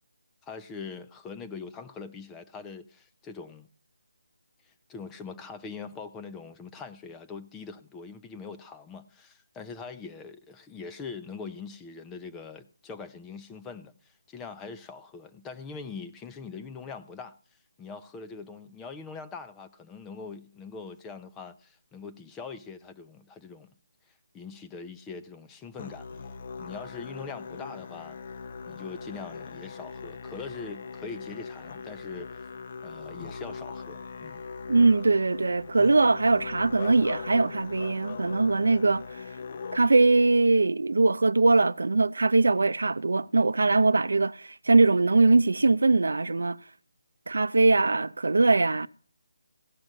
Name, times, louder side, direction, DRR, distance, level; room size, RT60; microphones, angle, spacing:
voice 1, 0.4-3.7 4.6-17.4 17.8-23.7 24.3-26.1 26.6-28.2 28.7-32.4 32.8-34.4, left 5 dB, 10° left, 0.6 m, -42 dB
Musical instrument, 25.8-39.8, left 5 dB, 40° left, 0.8 m, -40 dB
voice 2, 34.7-39.2 39.7-46.6 47.3-48.9, right 3 dB, 80° right, 0.5 m, -22 dB
16.0 x 6.0 x 6.4 m
figure-of-eight pair, 165°, 0 cm